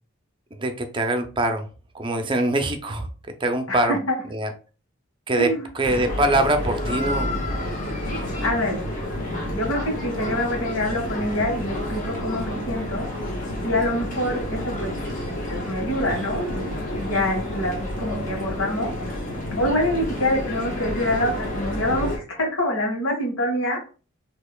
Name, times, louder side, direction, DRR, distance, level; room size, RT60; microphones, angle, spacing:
voice 1, 0.5-1.7 1.9-3.1 3.4-4.0 4.3-4.5 5.3-7.5, right 1 dB, 25° right, 6 dB, 0.5 m, -23 dB
sound 1, 5.8-22.2, left 1 dB, 40° left, 1.4 m, -29 dB
voice 2, 8.4-8.8 9.5-13.1 13.6-14.9 15.5-19.2 19.6-23.8, left 1 dB, 80° left, 1 dB, 1.6 m, -26 dB
6.3 x 2.9 x 2.3 m, 0.35 s
head